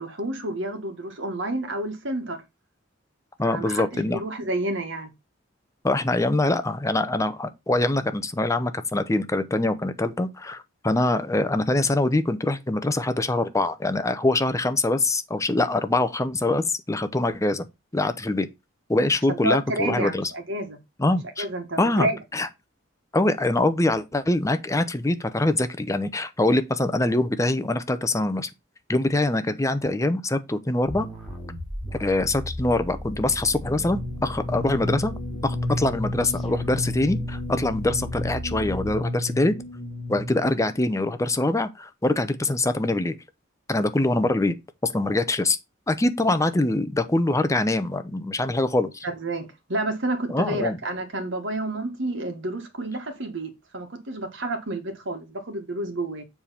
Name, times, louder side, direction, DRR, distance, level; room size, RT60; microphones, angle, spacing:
voice 1, 0.0-2.4 3.4-5.1 19.3-20.8 21.4-22.2 49.0-56.2, right 1 dB, 65° right, 1.6 m, -30 dB
voice 2, 3.4-4.2 5.8-17.7 17.9-18.5 18.9-20.3 21.0-21.5 21.8-22.5 23.1-28.5 28.9-31.1 32.0-35.1 35.4-39.5 40.1-43.2 43.7-44.5 44.8-45.6 45.9-49.1 50.3-50.8, left 2 dB, 15° left, 0.6 m, -24 dB
sound 1, 30.9-39.0, left 1 dB, ahead, 2.4 m, -37 dB
sound 2, 33.1-40.7, left 1 dB, 35° left, 2.3 m, -32 dB
7.3 x 3.5 x 5.7 m
head